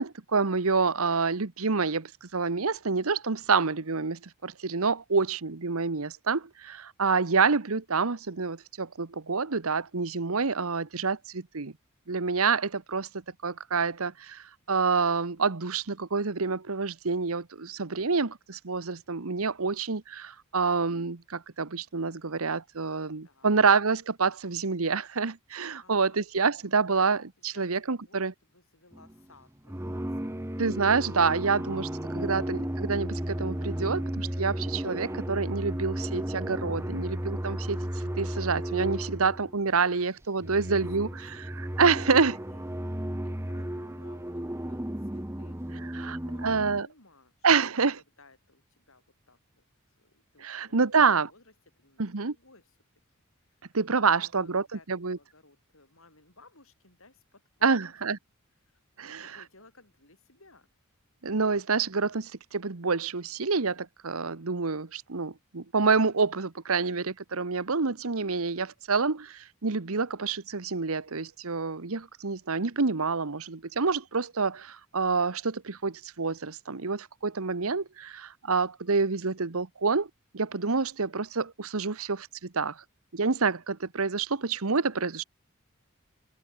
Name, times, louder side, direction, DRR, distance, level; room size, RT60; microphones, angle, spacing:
voice 1, 0.0-11.7 12.1-13.1 13.4-28.3 30.6-31.9 32.1-37.8 38.2-41.1 41.8-42.4 45.9-46.2 46.4-46.9 47.4-48.0 50.4-51.3 52.0-52.3 53.7-54.6 54.9-55.2 57.6-58.2 59.0-59.3 61.2-80.1 80.3-82.8 83.1-85.2, right 4 dB, 75° right, 1.1 m, -27 dB
voice 2, 23.2-23.6 25.8-26.7 27.4-29.8 30.1-30.9 31.9-32.4 40.5-41.8 42.0-47.5 47.7-47.8 48.2-49.6 50.0-51.0 51.3-52.8 53.5-53.8 54.1-58.1 58.6-58.8 59.1-60.7 84.8-85.3, left 2 dB, 65° left, 7.7 m, -59 dB
sound 1, 28.9-29.2 29.6-39.7 40.2-46.8, right 1 dB, 10° right, 1.2 m, -34 dB
head